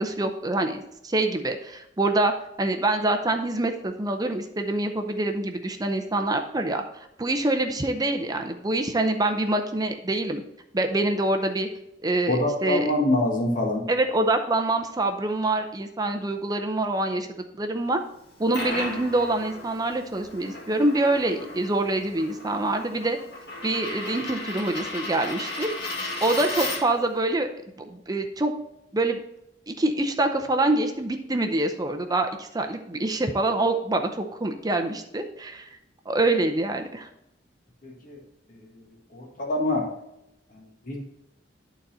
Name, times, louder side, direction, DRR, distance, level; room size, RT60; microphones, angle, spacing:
voice 1, 0.0-2.3 2.6-6.8 7.2-10.4 10.7-11.7 12.0-12.9 13.9-17.3 17.6-18.0 18.4-23.2 23.6-27.5 27.8-28.5 28.9-29.2 29.7-35.7 36.1-37.1, right 2 dB, 20° right, 5 dB, 0.6 m, -25 dB
voice 2, 12.3-13.8 37.8-38.2 39.1-39.9 40.5-41.0, left 1 dB, 50° left, 0 dB, 1.7 m, -25 dB
Coin (dropping), 18.2-27.1, left 2 dB, 65° left, 2.0 m, -35 dB
11.0 x 4.1 x 4.2 m, 0.82 s
head